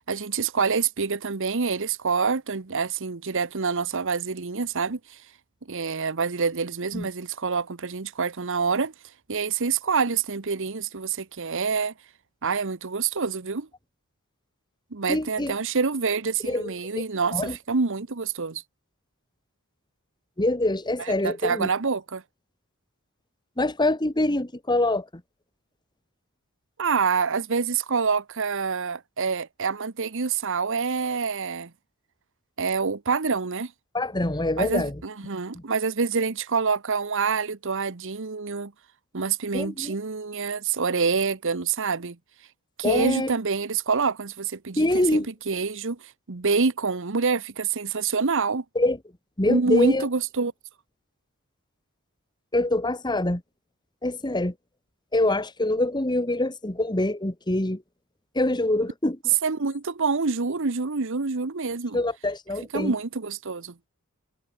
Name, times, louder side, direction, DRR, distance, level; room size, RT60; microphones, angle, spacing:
voice 1, 0.0-5.2 5.7-8.9 9.3-11.9 12.4-13.7 14.9-18.6 21.0-22.2 26.8-31.7 32.6-33.7 34.6-38.7 39.1-42.2 42.8-46.0 46.3-48.6 49.5-50.5 59.4-62.0 62.7-63.7, right 5 dB, 60° right, 1.0 m, -26 dB
voice 2, 15.1-15.5 16.4-17.0 17.3-17.6 20.4-21.7 23.6-25.2 33.9-35.0 35.5-35.6 39.5-39.9 42.8-43.3 44.8-45.3 48.7-49.0 49.4-50.1 52.5-53.4 54.0-54.5 55.1-57.8 58.3-59.2 61.9-62.9, left 1 dB, 20° left, 1.7 m, -25 dB
head